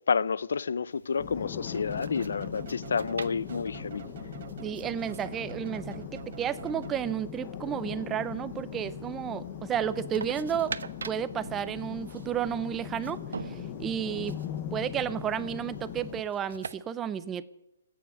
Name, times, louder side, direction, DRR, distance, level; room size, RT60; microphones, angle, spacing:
voice 1, 0.1-4.0, left 5 dB, 70° left, 0.6 m, -29 dB
sound 1, 0.9-16.8, right 5 dB, 80° right, 0.9 m, -46 dB
sound 2, 1.2-16.2, left 10 dB, 25° left, 0.9 m, -40 dB
sound 3, 1.7-7.4, right 6 dB, 40° right, 1.0 m, -46 dB
voice 2, 4.6-6.1 6.4-10.7 11.0-14.4 14.7-17.4, right 9 dB, 10° right, 0.5 m, -32 dB
14.0 x 9.4 x 9.9 m
hypercardioid pair, 175°, 0 cm